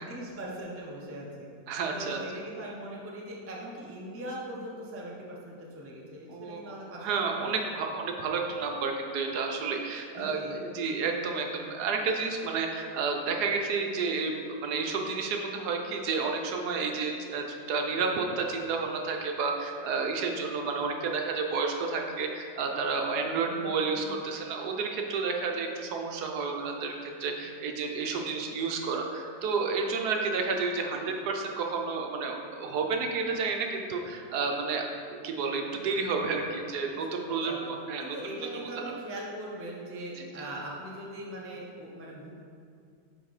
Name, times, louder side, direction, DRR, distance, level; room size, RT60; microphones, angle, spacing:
voice 1, 0.0-1.5 1.9-7.1 7.5-7.6 10.2-10.6 23.3-24.0 27.4-27.5 36.9-37.7 38.0-42.3, right 1 dB, 15° right, -3 dB, 0.5 m, -41 dB
voice 2, 1.7-2.2 6.3-34.8 35.1-38.2 38.6-38.9 40.2-40.3, right 4 dB, 75° right, 2 dB, 1.2 m, -31 dB
6.5 x 4.3 x 4.8 m, 2.3 s
omnidirectional pair, 1.8 m